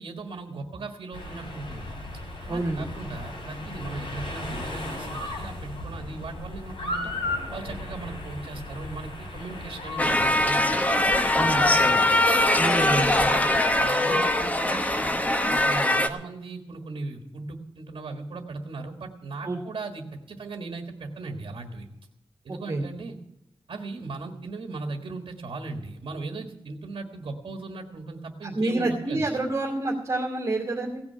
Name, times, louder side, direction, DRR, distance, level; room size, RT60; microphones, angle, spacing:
voice 1, 0.0-1.8 2.4-7.1 7.5-12.1 12.5-13.4 13.8-15.2 15.5-21.9 22.4-23.2 23.7-29.3, right 3 dB, 65° right, 5 dB, 1.5 m, -37 dB
sound 1, 1.1-13.7, left 2 dB, 75° left, 3.7 m, -36 dB
voice 2, 2.5-2.8 11.3-11.6 12.5-13.1 19.4-19.6 22.5-22.8 28.5-31.0, right 2 dB, 30° right, -3 dB, 2.5 m, -27 dB
sound 2, 10.0-16.1, left 1 dB, 15° left, 0.8 m, -22 dB
16.5 x 6.1 x 8.6 m, 0.87 s
wide cardioid pair, 175°, 9 cm